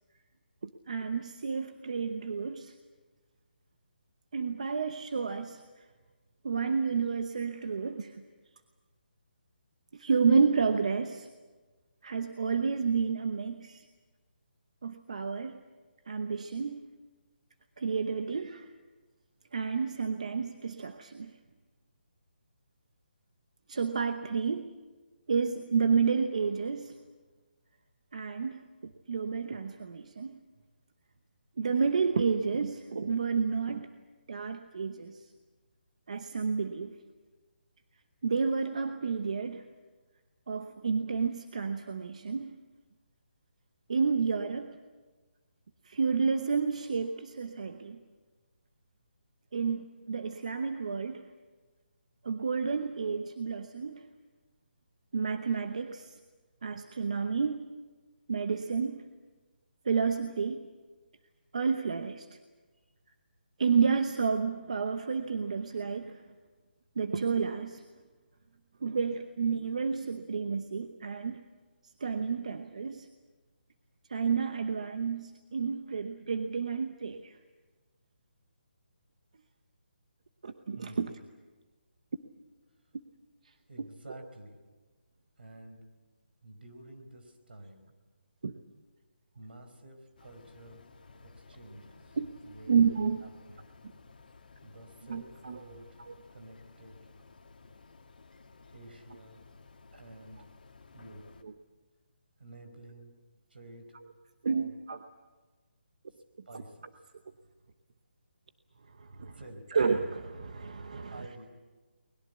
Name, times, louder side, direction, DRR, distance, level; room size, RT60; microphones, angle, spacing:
voice 1, 0.6-2.7 4.3-5.9 6.4-8.2 9.9-11.3 12.0-13.9 14.8-15.6 16.1-16.8 17.8-18.7 19.5-21.4 23.7-24.7 25.3-27.0 28.1-30.4 31.6-33.9 34.3-35.3 36.1-37.0 38.2-39.7 40.5-42.6 43.9-44.8 45.8-48.0 49.5-51.3 52.2-54.1 55.1-56.2 56.6-57.7 58.3-59.0 59.8-60.6 61.5-62.4 63.6-66.2 67.0-67.8 68.8-71.4 71.8-73.1 74.1-77.4 80.4-81.1 83.4-83.9 88.4-88.5 92.2-92.3 92.7-93.2 95.1-95.6 96.1-96.2 101.4-101.5 104.4-105.0 109.0-109.4 109.7-111.4, right 5 dB, 40° right, 8 dB, 0.9 m, -30 dB
voice 2, 80.7-81.2 83.7-84.6 85.4-85.8 86.4-87.9 89.3-90.9 91.2-92.2 92.4-92.9 93.5-93.7 94.6-96.0 96.3-97.0 98.7-99.4 99.9-100.5 100.9-101.4 102.4-103.1 103.5-104.0 104.5-104.7 106.5-106.9 109.3-109.7 111.1-111.5, right 1 dB, 65° right, 6 dB, 4.7 m, -50 dB
sound 1, 90.2-101.4, left 4 dB, 50° left, 2.0 m, -56 dB
23.0 x 21.0 x 8.2 m, 1.3 s
hypercardioid pair, 180°, 6 cm